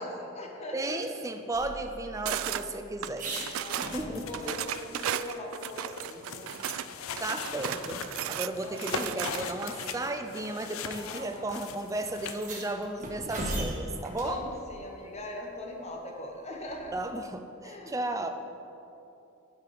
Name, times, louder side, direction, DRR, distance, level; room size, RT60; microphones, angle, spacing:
voice 1, 0.0-1.0 2.3-2.4 3.6-6.5 8.6-8.8 10.9-11.5 14.2-16.9 17.6-18.0, left 1 dB, 30° left, 1 dB, 1.1 m, -41 dB
voice 2, 0.7-3.4 3.8-4.6 7.2-14.5 16.9-18.3, right 2 dB, 15° right, 6 dB, 0.4 m, -34 dB
sound 1, 1.5-4.5 4.9-5.0 5.3-6.8 7.1-7.3 7.7-7.8 8.9-9.0 9.9-10.1 11.1-11.3 11.5-11.6 12.2-14.4 16.7-17.1, right 1 dB, 40° right, 1.4 m, -39 dB
sound 2, 2.3-2.6 3.0-4.0 4.3-6.9 7.2-9.7, right 11 dB, 80° right, 0.3 m, -35 dB
sound 3, 3.5-12.5, left 6 dB, 90° left, 0.5 m, -40 dB
11.5 x 4.8 x 5.1 m, 2.8 s
head